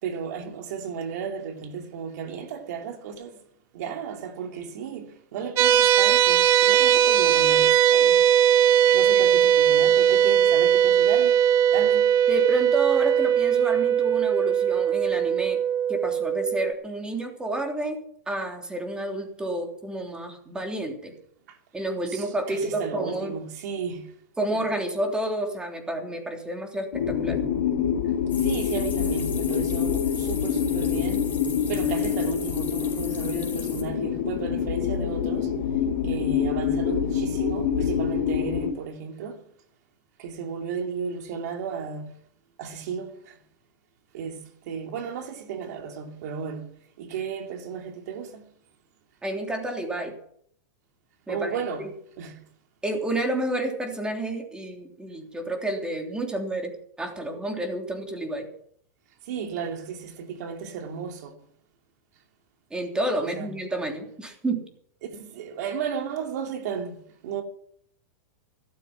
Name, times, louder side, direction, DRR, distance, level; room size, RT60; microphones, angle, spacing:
voice 1, 0.0-3.4 3.7-8.3 8.9-11.4 11.7-12.1 21.5-21.6 22.1-24.2 24.5-24.6 28.4-31.3 31.7-35.5 36.0-39.4 40.2-42.2 42.6-43.4 44.1-48.4 51.3-52.4 59.3-61.3 63.2-63.6 65.0-67.4, right 6 dB, 65° right, 2.8 m, -34 dB
sound 1, 5.6-16.7, right 9 dB, 30° right, 0.7 m, -19 dB
voice 2, 12.3-15.6 15.9-18.0 18.3-21.1 21.7-23.3 24.4-27.4 49.2-50.1 51.3-51.5 52.8-58.5 62.7-64.6, right 1 dB, 10° right, 3.3 m, -30 dB
sound 2, 26.9-38.7, left 8 dB, 75° left, 4.4 m, -26 dB
sound 3, 28.3-33.8, left 5 dB, 15° left, 5.2 m, -39 dB
14.5 x 13.0 x 5.9 m
supercardioid pair, 145°, 10 cm